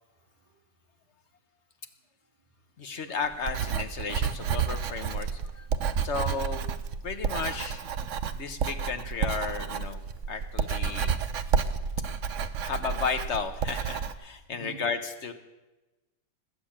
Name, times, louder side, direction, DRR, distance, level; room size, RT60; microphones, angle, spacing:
voice 1, 0.1-0.6 2.6-3.2 14.5-14.8, right 4 dB, 10° left, -4 dB, 7.1 m, -52 dB
voice 2, 2.8-6.7 7.0-7.8 8.3-10.0 10.3-11.2 12.6-15.3, left 5 dB, 50° left, 7 dB, 1.2 m, -34 dB
Writing, 3.3-14.1, right 6 dB, 60° right, 1.0 m, -30 dB
20.0 x 7.5 x 8.6 m, 1.1 s
omnidirectional pair, 1.8 m